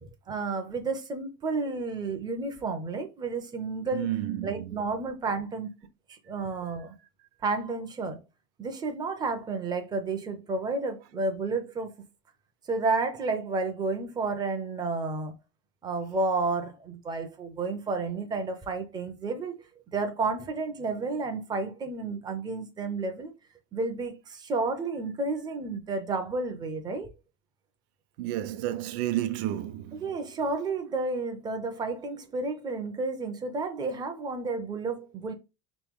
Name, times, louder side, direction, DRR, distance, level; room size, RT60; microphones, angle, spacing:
voice 1, 0.0-4.1 4.4-5.7 6.1-6.9 7.4-8.2 8.6-11.9 12.7-15.3 15.8-19.6 19.9-23.3 23.7-27.1 29.9-35.3, right 3 dB, 15° right, 0.4 m, -31 dB
voice 2, 3.9-4.8 28.2-30.1, right 13 dB, 75° right, 0.6 m, -31 dB
4.3 x 3.1 x 3.5 m
cardioid pair, 180°, 32 cm